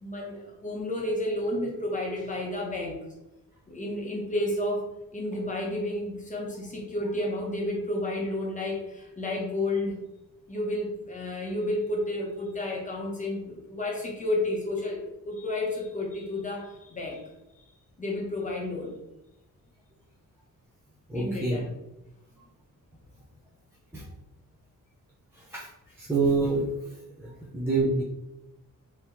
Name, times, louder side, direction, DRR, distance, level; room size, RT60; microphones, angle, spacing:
voice 1, 0.0-3.0 3.7-10.0 10.5-17.2 17.5-17.6 18.0-19.0 21.1-21.7, left 1 dB, 25° left, -2 dB, 0.8 m, -31 dB
voice 2, 21.1-21.6 23.9-24.0 25.3-25.7 26.0-26.7 27.2-28.0, right 3 dB, 10° right, -6 dB, 0.5 m, -27 dB
3.5 x 2.9 x 3.0 m, 0.95 s
wide cardioid pair, 160°, 33 cm